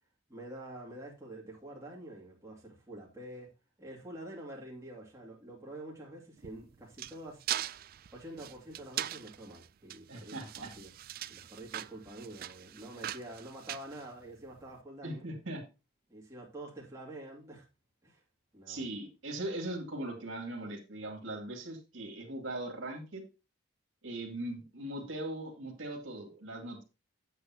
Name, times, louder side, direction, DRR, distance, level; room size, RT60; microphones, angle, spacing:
voice 1, 0.3-3.5 3.8-7.4 8.1-10.9 11.3-15.3 16.1-17.7 18.0-18.2 18.5-18.9, right 1 dB, 15° right, 2.4 m, -47 dB
sound 1, 6.4-14.6, right 12 dB, 45° right, 0.3 m, -41 dB
voice 2, 10.1-10.7 15.0-15.6 18.7-23.2 24.0-26.8, right 1 dB, 70° right, 2.3 m, -40 dB
8.4 x 8.3 x 2.9 m
head